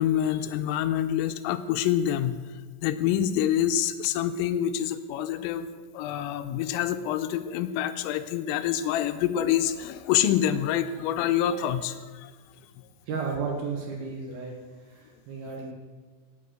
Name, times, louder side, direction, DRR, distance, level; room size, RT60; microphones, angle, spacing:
voice 1, 0.0-2.4 2.8-12.3, left 10 dB, 85° left, 10 dB, 3.2 m, -26 dB
voice 2, 13.1-14.6 14.9-15.7, right 5 dB, 60° right, 0 dB, 2.8 m, -33 dB
18.0 x 8.2 x 6.4 m, 1.4 s
omnidirectional pair, 6.0 m